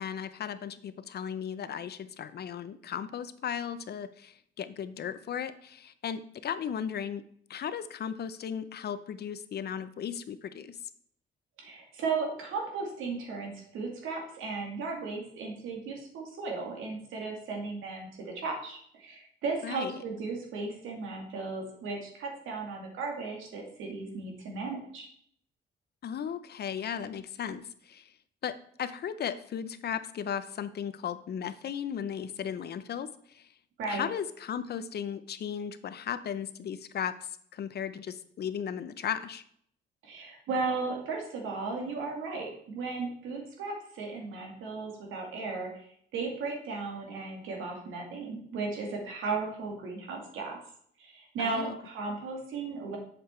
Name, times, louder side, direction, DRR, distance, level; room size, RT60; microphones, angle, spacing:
voice 1, 0.0-7.2 7.5-10.8 19.6-20.0 26.0-28.1 28.4-33.5 33.9-37.2 37.5-39.4 51.4-51.8, left 8 dB, 55° left, 13 dB, 0.7 m, -36 dB
voice 2, 11.6-25.1 33.8-34.0 40.0-45.7 46.1-50.6 51.0-53.0, right 4 dB, 85° right, 1 dB, 2.3 m, -35 dB
7.7 x 6.7 x 4.4 m, 0.65 s
cardioid pair, 90°, 20 cm